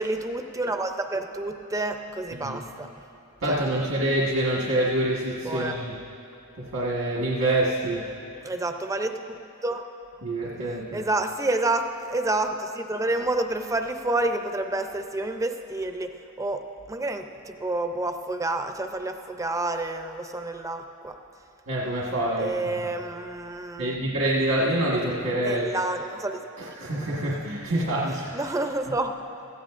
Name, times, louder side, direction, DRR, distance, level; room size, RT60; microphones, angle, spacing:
voice 1, 0.0-2.9 3.5-3.7 5.5-5.7 8.4-9.4 9.6-9.8 10.9-16.1 16.4-16.6 16.9-21.1 22.4-24.0 25.4-26.4 28.3-29.1, right 2 dB, 15° right, 6 dB, 0.5 m, -29 dB
voice 2, 3.4-6.1 6.6-8.1 10.2-11.1 21.7-22.9 23.8-25.7 26.6-28.5 28.9-29.0, right 1 dB, 80° right, -5 dB, 1.6 m, -26 dB
17.5 x 14.0 x 2.5 m, 2.7 s
head